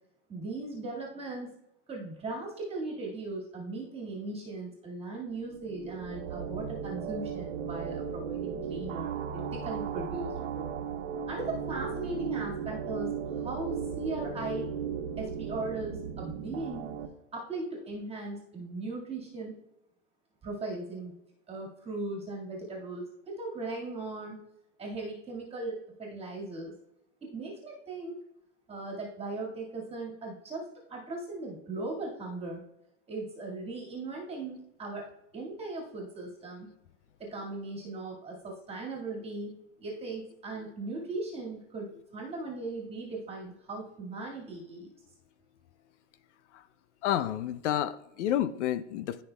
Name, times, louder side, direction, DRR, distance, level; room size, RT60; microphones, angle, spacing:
voice 1, 0.3-1.5 1.9-10.7 11.3-14.7 15.2-16.9 17.3-19.6 20.4-21.2 21.5-24.4 24.8-26.7 27.2-28.2 28.7-32.6 33.1-35.1 35.3-36.7 37.2-44.9, right 2 dB, 15° right, -2 dB, 1.9 m, -38 dB
sound 1, 5.5-17.1, right 7 dB, 70° right, 1.2 m, -36 dB
voice 2, 47.0-49.2, left 11 dB, 70° left, 14 dB, 0.6 m, -30 dB
14.0 x 5.6 x 2.3 m, 0.84 s
supercardioid pair, 135°, 37 cm